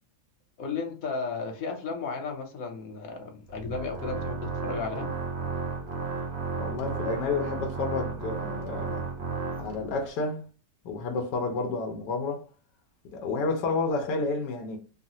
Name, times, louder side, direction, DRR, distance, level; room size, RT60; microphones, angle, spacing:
voice 1, 0.6-5.1, left 4 dB, 65° left, 1.0 m, -34 dB
Organ, 3.5-10.1, right 4 dB, 65° right, 0.6 m, -33 dB
voice 2, 6.6-9.0 9.6-10.4 10.8-12.5 13.1-14.8, left 3 dB, 80° left, 1.3 m, -30 dB
3.7 x 2.1 x 2.6 m
omnidirectional pair, 1.9 m